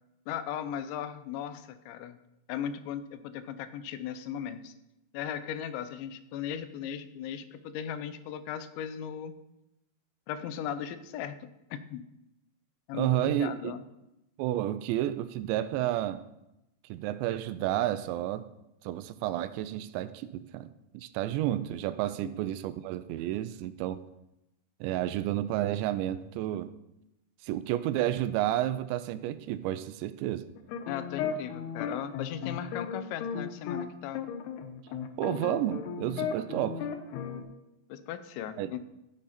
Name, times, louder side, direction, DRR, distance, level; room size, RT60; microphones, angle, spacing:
voice 1, 0.3-2.2 2.5-4.7 5.1-9.3 10.3-12.0 12.9-13.8 22.2-22.3 30.9-34.3 37.9-38.8, left 9 dB, 90° left, 12 dB, 3.1 m, -37 dB
voice 2, 12.9-13.7 14.4-16.2 16.9-18.4 18.8-20.7 20.9-24.0 24.8-26.7 27.4-30.5 35.2-36.8 38.6-38.7, right 13 dB, 90° right, 13 dB, 2.9 m, -31 dB
sound 1, 30.6-33.9 34.1-37.4, left 7 dB, 75° left, 2.7 m, -35 dB
14.0 x 10.0 x 4.3 m, 0.89 s
omnidirectional pair, 5.1 m